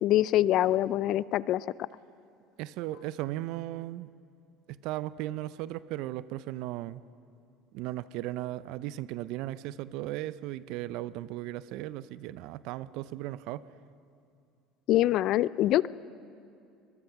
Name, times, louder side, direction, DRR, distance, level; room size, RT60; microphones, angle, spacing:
voice 1, 0.0-1.6 14.9-15.9, left 14 dB, 60° left, 20 dB, 0.4 m, -24 dB
voice 2, 2.6-4.1 4.7-7.0 7.7-13.7, right 15 dB, 70° right, 16 dB, 0.5 m, -36 dB
24.0 x 21.0 x 5.8 m, 2.5 s
supercardioid pair, 85°, 0 cm